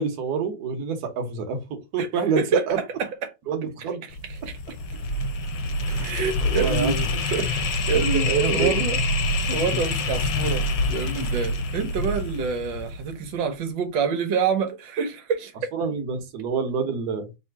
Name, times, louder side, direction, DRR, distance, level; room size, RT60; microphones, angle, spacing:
voice 1, 0.0-2.8 3.5-4.0 5.9-6.1 6.4-7.1 7.3-7.5 8.3-8.8 15.7-17.3, right 5 dB, 60° right, 1.4 m, -27 dB
voice 2, 2.4-3.3 4.5-4.6 6.0-9.0 9.4-15.7, right 5 dB, 85° right, 1.6 m, -27 dB
sound 1, 4.1-13.2, left 2 dB, 70° left, 1.1 m, -26 dB
3.4 x 2.7 x 4.4 m
omnidirectional pair, 2.0 m